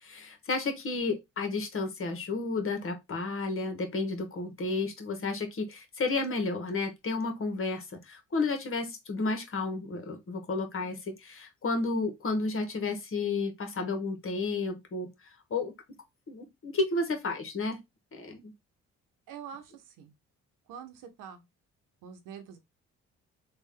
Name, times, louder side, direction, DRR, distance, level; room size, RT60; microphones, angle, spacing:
voice 1, 0.0-15.7 16.3-17.8 18.1-18.5, left 3 dB, 45° left, 1.2 m, -32 dB
voice 2, 19.3-20.1 20.7-21.4 22.0-22.6, right 8 dB, 80° right, 0.9 m, -45 dB
3.4 x 2.4 x 3.6 m
supercardioid pair, 65°, 31 cm